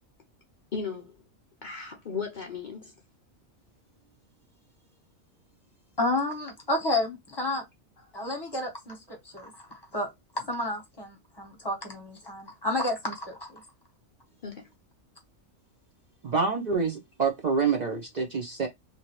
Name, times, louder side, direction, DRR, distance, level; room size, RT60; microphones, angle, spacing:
voice 1, 0.7-1.2 1.6-2.9 14.4-14.7, left 5 dB, 55° left, 0.5 m, -36 dB
voice 2, 6.0-7.6 8.1-9.6 9.9-10.1 10.3-13.6, left 1 dB, 20° left, 0.9 m, -31 dB
voice 3, 16.2-18.7, right 5 dB, 65° right, 0.4 m, -27 dB
2.9 x 2.6 x 2.9 m
omnidirectional pair, 1.4 m